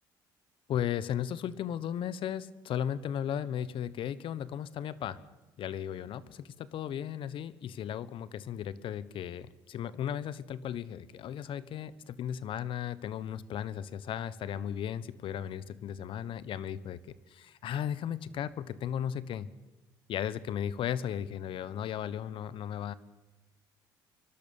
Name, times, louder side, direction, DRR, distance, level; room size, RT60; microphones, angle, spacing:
voice 1, 0.7-5.2 5.6-17.0 17.3-19.5 20.1-22.9, left 9 dB, 60° left, 17 dB, 1.2 m, -35 dB
24.5 x 12.0 x 9.0 m, 1.2 s
supercardioid pair, 70°, 10 cm